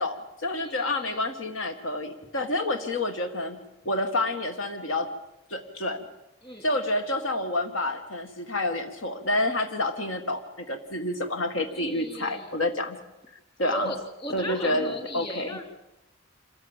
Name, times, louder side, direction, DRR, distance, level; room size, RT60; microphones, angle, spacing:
voice 1, 0.0-3.6 3.9-5.1 5.5-6.0 6.6-13.0 13.6-13.9 14.3-15.6, left 1 dB, 70° left, 6 dB, 1.9 m, -28 dB
voice 2, 0.6-1.3 6.4-6.7 11.7-12.5 13.6-15.6, equal, 20° left, 5 dB, 3.0 m, -37 dB
26.5 x 15.0 x 9.0 m, 0.94 s
head